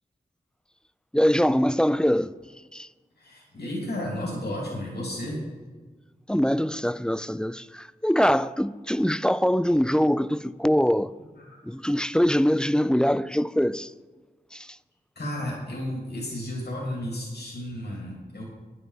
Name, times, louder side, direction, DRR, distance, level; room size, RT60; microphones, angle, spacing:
voice 1, 1.1-2.3 2.7-2.9 6.3-11.1 11.6-13.9 14.5-14.7, equal, 5° left, 0.3 m, -23 dB
voice 2, 3.2-5.5 11.4-11.6 15.2-18.4, left 1 dB, 80° left, 2.8 m, -33 dB
10.0 x 9.4 x 5.0 m
wide cardioid pair, 70°, 17 cm